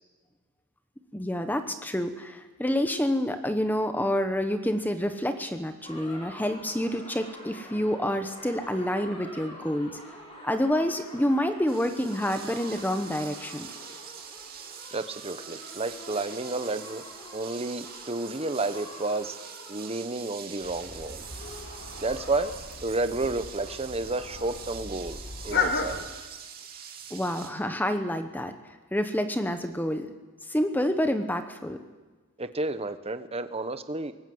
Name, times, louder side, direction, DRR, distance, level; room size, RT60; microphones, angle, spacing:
voice 1, 1.1-10.0 10.4-13.7 27.1-28.5 28.9-30.1 30.5-31.8, equal, 10° left, 8 dB, 1.0 m, -28 dB
sound 1, 5.8-22.6, left 1 dB, 25° left, 4.5 m, -47 dB
sound 2, 11.7-27.5, right 8 dB, 40° right, 2.5 m, -44 dB
voice 2, 14.9-17.0 17.3-19.4 19.7-21.2 22.0-22.5 22.8-25.2 25.4-26.0 32.4-34.1, right 2 dB, 25° right, 11 dB, 1.0 m, -31 dB
sound 3, 20.6-26.0, left 4 dB, 50° left, 2.5 m, -34 dB
23.5 x 19.0 x 7.9 m, 1.3 s
head